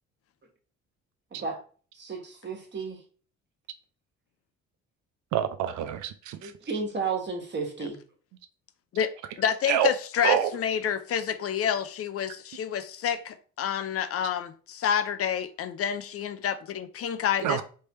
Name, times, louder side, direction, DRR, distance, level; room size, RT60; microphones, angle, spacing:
voice 1, 1.9-3.0 6.4-8.0, right 4 dB, 35° right, 1.5 m, -33 dB
voice 2, 5.3-6.5 9.7-9.9 10.2-10.5 17.4-17.6, right 10 dB, 75° right, 0.5 m, -26 dB
voice 3, 9.4-17.6, left 9 dB, 50° left, 0.5 m, -28 dB
3.3 x 3.3 x 4.1 m
cardioid pair, 95°, 29 cm